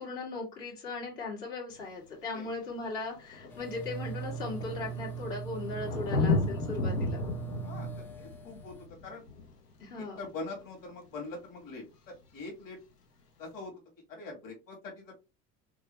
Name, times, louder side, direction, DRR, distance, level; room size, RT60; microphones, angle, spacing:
voice 1, 0.0-7.2 9.8-10.2, left 3 dB, 60° left, -3 dB, 2.2 m, -38 dB
Thunder, 1.8-1.9 2.8-2.9 3.1-10.5 12.1-12.2, left 3 dB, 80° left, 1.0 m, -34 dB
sound 1, 3.5-8.8, right 7 dB, 5° left, 0.4 m, -40 dB
voice 2, 7.6-8.7 9.0-9.2 10.2-12.8 13.4-13.7 14.1-15.1, left 3 dB, 40° left, 1 dB, 2.1 m, -43 dB
3.8 x 3.7 x 3.1 m, 0.26 s
figure-of-eight pair, 60°, 47 cm